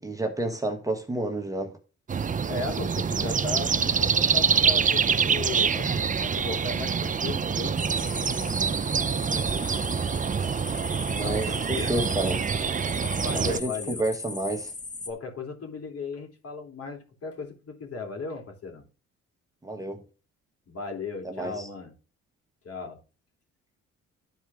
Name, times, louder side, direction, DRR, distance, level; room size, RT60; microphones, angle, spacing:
voice 1, 0.0-1.8 8.7-9.7 11.1-12.5 13.3-14.7 19.6-20.0 21.2-21.7, right 1 dB, 10° right, 1.3 m, -31 dB
sound 1, 2.1-13.6, right 6 dB, 25° right, 0.5 m, -26 dB
voice 2, 2.5-7.7 11.2-12.0 13.2-14.0 15.1-18.9 20.7-21.9 22.6-23.0, left 4 dB, 50° left, 3.2 m, -36 dB
sound 2, 7.8-15.1, left 3 dB, 25° left, 1.3 m, -38 dB
11.5 x 4.4 x 3.5 m
cardioid pair, 90°, 30 cm